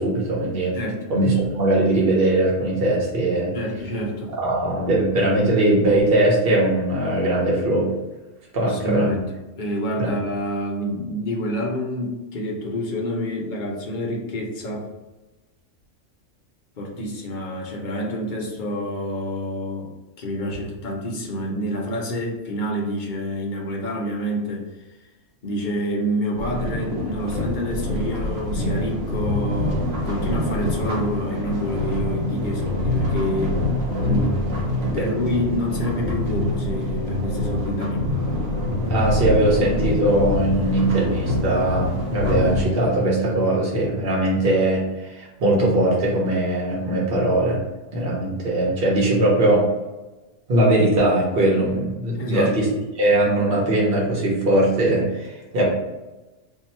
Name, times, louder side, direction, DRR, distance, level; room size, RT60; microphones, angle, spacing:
voice 1, 0.0-0.7 1.1-3.5 4.4-7.9 8.5-9.1 10.0-10.1 35.0-35.1 38.9-47.6 47.9-49.7 50.5-52.7 53.0-55.6, right 1 dB, 50° right, -4 dB, 1.2 m, -20 dB
voice 2, 3.5-4.4 8.6-9.3 9.6-14.9 16.8-24.7 25.4-33.6 34.0-34.4 34.8-38.1 40.6-40.8 52.1-52.5, equal, 45° left, -1 dB, 0.8 m, -28 dB
sound 1, 26.4-42.7, left 1 dB, 85° right, 1.2 m, -25 dB
2.8 x 2.8 x 4.2 m, 1.1 s
omnidirectional pair, 1.3 m